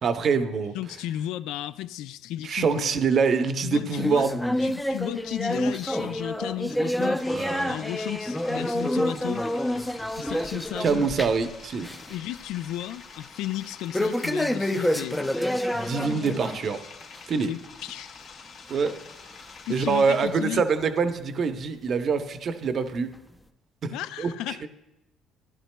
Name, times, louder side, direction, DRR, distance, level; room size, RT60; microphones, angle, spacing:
voice 1, 0.0-0.8 2.4-4.4 7.3-7.7 10.8-11.9 15.7-16.8 17.3-17.5 18.7-18.9 19.7-23.2 23.8-24.7, right 5 dB, 45° right, 0.7 m, -25 dB
voice 2, 0.7-3.0 3.6-4.3 4.6-7.2 7.7-9.5 10.2-11.0 12.1-15.2 17.4-18.3 19.6-20.7 23.9-24.7, left 14 dB, 80° left, 0.3 m, -34 dB
sound 1, 4.0-11.5 11.8-12.2 12.5-12.6 13.9-16.6 17.0-17.2 17.9-18.0 18.9-19.0 19.7-19.8, left 1 dB, 5° left, 0.5 m, -28 dB
sound 2, 7.2-20.3, left 5 dB, 65° left, 1.9 m, -47 dB
16.0 x 11.0 x 2.2 m
cardioid pair, 105°, 0 cm